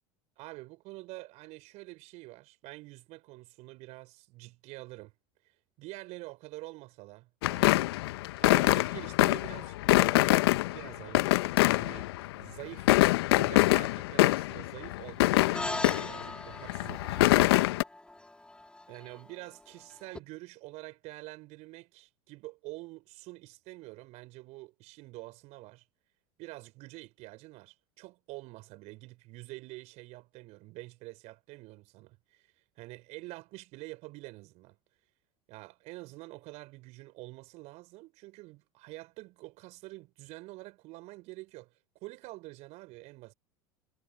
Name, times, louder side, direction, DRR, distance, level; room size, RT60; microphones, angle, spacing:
voice 1, 0.4-5.1 5.8-7.8 8.4-10.3 10.7-12.9 13.4-17.3 18.9-25.8 26.4-34.8 35.5-41.7 42.0-43.3, right 21 dB, 55° right, 6.6 m, -47 dB
sound 1, 7.4-12.4 12.7-16.3 16.6-17.8, left 18 dB, 70° left, 1.2 m, -25 dB
sound 2, 15.5-20.2, left 2 dB, 5° left, 4.7 m, -41 dB
hypercardioid pair, 80°, 13 cm